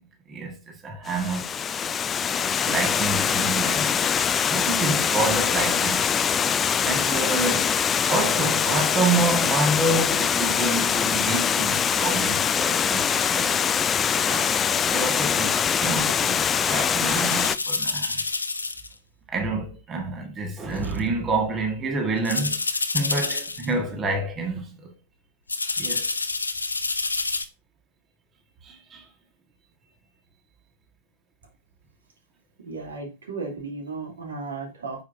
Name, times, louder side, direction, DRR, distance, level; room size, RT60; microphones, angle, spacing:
voice 1, 0.3-1.5 2.3-6.0 6.8-7.8 8.1-18.2 19.3-22.6 22.9-24.9 25.8-26.1 28.6-29.1, right 3 dB, 25° right, 1.7 m, -28 dB
Water, 1.1-17.6, left 7 dB, 20° left, 0.4 m, -23 dB
sound 1, 16.0-16.1 17.0-18.9 19.3-19.4 20.8-21.0 22.2-23.7 24.1-24.3 25.5-27.4, left 3 dB, 80° left, 0.8 m, -28 dB
voice 2, 32.6-35.0, right 4 dB, 70° right, 2.8 m, -35 dB
9.3 x 6.4 x 2.7 m
figure-of-eight pair, 95°, 0 cm